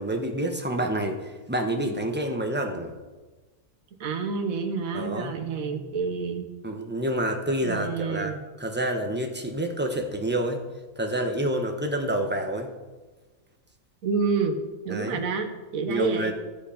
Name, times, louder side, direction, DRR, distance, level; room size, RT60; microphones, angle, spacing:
voice 1, 0.0-3.0 4.9-5.3 6.6-10.6 11.0-12.7 14.9-15.2 15.9-16.3, right 1 dB, 10° right, 3 dB, 0.9 m, -28 dB
voice 2, 4.0-6.5 7.6-8.4 14.0-14.6 14.8-16.3, right 5 dB, 70° right, 6 dB, 1.5 m, -28 dB
14.5 x 8.0 x 5.1 m, 1.3 s
omnidirectional pair, 1.5 m